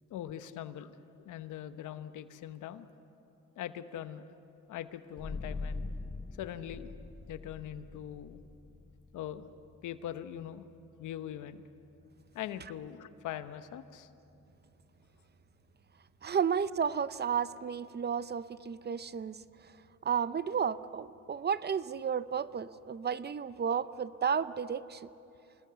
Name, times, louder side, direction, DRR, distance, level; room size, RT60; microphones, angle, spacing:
voice 1, 0.1-2.9 3.6-4.2 4.7-5.9 6.4-6.9 7.3-8.4 9.1-9.4 9.8-10.6 11.0-11.6 12.3-14.1, left 11 dB, 80° left, 11 dB, 1.1 m, -42 dB
sound 1, 5.2-16.4, left 3 dB, 15° left, 0.6 m, -46 dB
voice 2, 16.2-19.4 20.0-25.1, right 7 dB, 35° right, 15 dB, 0.6 m, -32 dB
27.5 x 20.0 x 7.0 m, 2.8 s
cardioid pair, 90°, 30 cm